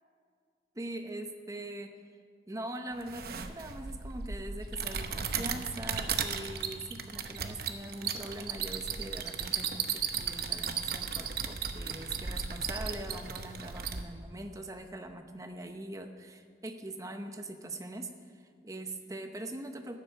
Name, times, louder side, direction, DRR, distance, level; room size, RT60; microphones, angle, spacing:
voice 1, 0.7-1.9 2.5-20.0, right 1 dB, 20° right, 6 dB, 0.8 m, -42 dB
sound 1, 3.0-14.0, right 6 dB, 55° right, 0.8 m, -36 dB
12.0 x 10.0 x 7.5 m, 2.1 s
head